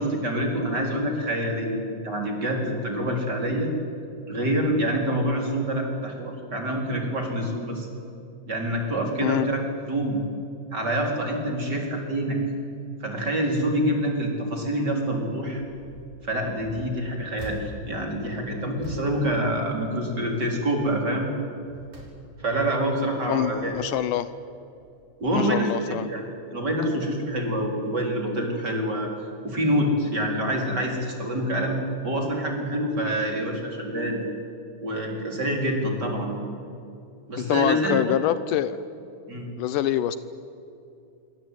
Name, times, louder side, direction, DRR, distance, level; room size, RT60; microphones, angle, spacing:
voice 1, 0.0-3.7 4.3-7.9 8.5-9.6 9.9-10.2 10.7-12.4 13.0-15.6 16.2-21.3 22.4-23.7 25.2-26.2 26.5-29.1 29.4-34.2 34.8-36.4 37.3-38.1 39.3-39.5, right 1 dB, 30° right, 1 dB, 4.7 m, -26 dB
sound 1, 15.7-16.1 16.5-20.2 20.6-20.9 21.4-22.7 23.2-24.1 24.8-25.0 25.2-25.3, equal, 60° right, 6.8 m, -44 dB
voice 2, 23.3-24.3 25.3-26.1 37.4-38.8 39.6-40.2, left 11 dB, 75° left, 14 dB, 2.2 m, -25 dB
27.0 x 23.0 x 9.3 m, 2.6 s
omnidirectional pair, 4.0 m